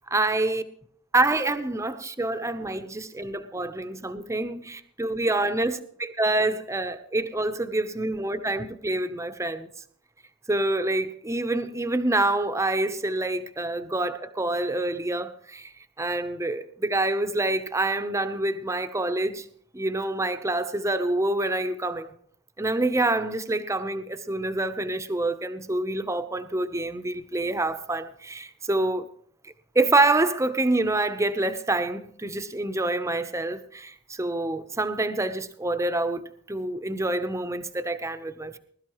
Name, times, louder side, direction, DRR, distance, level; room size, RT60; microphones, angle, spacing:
voice 1, 0.1-0.6 1.1-9.7 10.5-15.7 16.0-19.5 19.7-22.1 22.6-29.1 29.7-38.6, right 2 dB, 15° right, 0.8 m, -27 dB
20.5 x 12.5 x 3.1 m
head